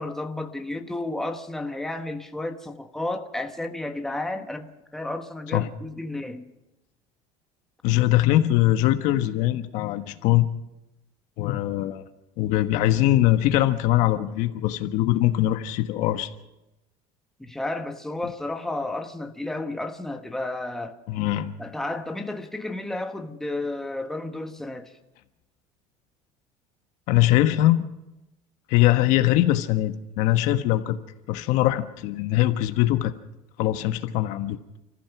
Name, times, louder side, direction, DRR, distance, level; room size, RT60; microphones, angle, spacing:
voice 1, 0.0-6.5 17.4-21.0 21.6-24.9, left 2 dB, 5° left, 4 dB, 1.3 m, -32 dB
voice 2, 7.8-10.5 11.4-12.0 12.4-16.3 21.1-21.5 27.1-27.8 28.7-31.0 31.3-33.1 33.6-34.6, left 14 dB, 70° left, 8 dB, 1.3 m, -22 dB
29.5 x 14.5 x 6.0 m, 0.96 s
cardioid pair, 145°, 13 cm